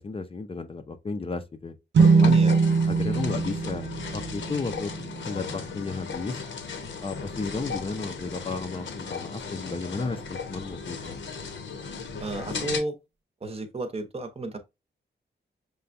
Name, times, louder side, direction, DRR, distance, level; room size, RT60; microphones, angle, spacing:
voice 1, 0.0-1.8 2.2-2.4 2.9-4.9 5.2-6.4 7.0-11.2, left 4 dB, 30° left, 0.5 m, -33 dB
sound 1, 1.9-5.5, right 4 dB, 70° right, 0.6 m, -22 dB
sound 2, 2.0-12.8, left 5 dB, 75° left, 0.9 m, -36 dB
voice 2, 12.2-13.0 13.4-14.6, right 2 dB, 30° right, 0.8 m, -32 dB
6.6 x 2.2 x 2.5 m
wide cardioid pair, 155°, 20 cm